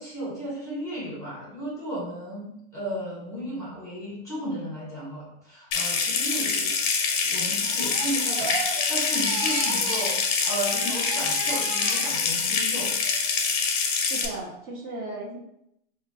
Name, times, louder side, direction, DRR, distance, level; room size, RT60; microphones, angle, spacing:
voice 1, 0.0-6.8 7.2-12.9, equal, 10° left, -6 dB, 1.0 m, -34 dB
Water tap faucet / Sink (filling or washing) / Trickle dribble, 5.7-14.3, left 5 dB, 35° left, 0.5 m, -25 dB
Crying sobbing, 7.6-10.1 10.4-12.6 13.0-13.4, right 4 dB, 70° right, 0.8 m, -34 dB
voice 2, 14.1-15.4, right 2 dB, 45° right, -4 dB, 1.0 m, -35 dB
3.9 x 2.2 x 2.7 m, 0.77 s
supercardioid pair, 145°, 33 cm